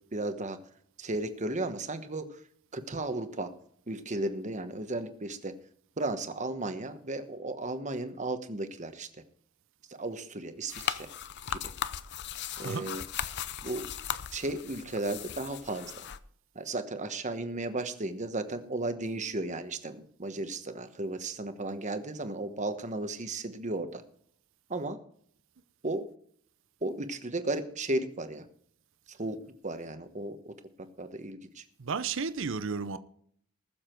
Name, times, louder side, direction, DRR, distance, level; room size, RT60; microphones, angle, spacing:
voice 1, 0.1-0.6 1.0-2.4 2.7-3.5 3.9-5.5 6.0-9.1 10.0-11.1 11.5-11.6 12.6-13.0 13.6-13.9 14.3-15.9 16.5-24.0 24.7-25.0 25.8-26.1 26.8-28.4 29.1-29.4 29.6-30.5 30.8-31.6, right 2 dB, 35° right, 1.2 m, -34 dB
sound 1, 10.7-16.2, left 9 dB, 50° left, 0.6 m, -37 dB
voice 2, 31.8-33.0, right 5 dB, 60° right, 0.7 m, -32 dB
20.0 x 7.3 x 4.5 m
head